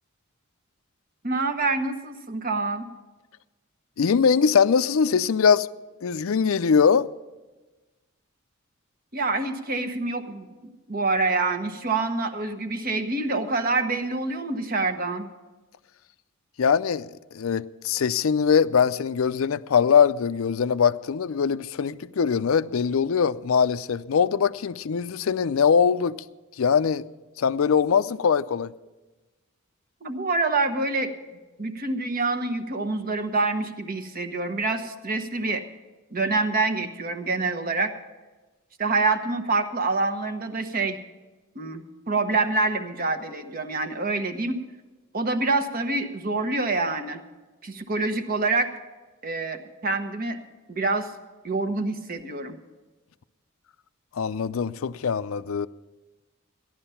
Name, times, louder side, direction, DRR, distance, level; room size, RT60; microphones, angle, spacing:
voice 1, 1.2-2.9 9.1-10.5 10.9-15.3 30.0-31.1 31.6-35.6 36.1-37.9 38.8-41.0 41.5-44.6 45.1-47.2 47.6-48.7 49.2-50.4 50.7-51.1 51.4-52.6, right 3 dB, 45° right, 1.1 m, -26 dB
voice 2, 4.0-5.7 6.0-7.1 16.6-26.2 26.6-27.1 27.4-28.7 54.1-55.7, left 6 dB, 75° left, 0.5 m, -22 dB
15.0 x 11.0 x 5.7 m
head